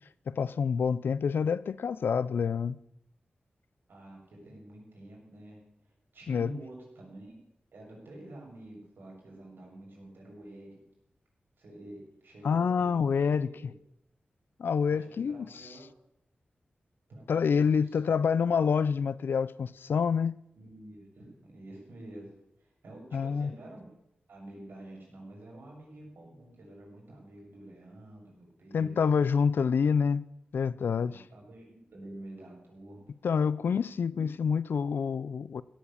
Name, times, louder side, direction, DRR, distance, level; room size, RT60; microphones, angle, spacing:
voice 1, 0.3-2.8 6.3-6.6 12.4-13.5 14.6-15.7 17.3-20.4 23.1-23.5 28.7-30.3 30.5-31.2 33.2-35.6, left 6 dB, 85° left, 0.5 m, -27 dB
voice 2, 3.9-5.6 6.1-7.3 7.7-10.8 11.6-12.0 12.2-13.7 14.8-15.9 17.1-18.2 20.6-22.3 22.8-23.9 24.3-29.0 31.1-33.1 34.1-34.3, right 1 dB, 80° right, 7.1 m, -48 dB
17.0 x 9.2 x 7.0 m
wide cardioid pair, 125°, 4 cm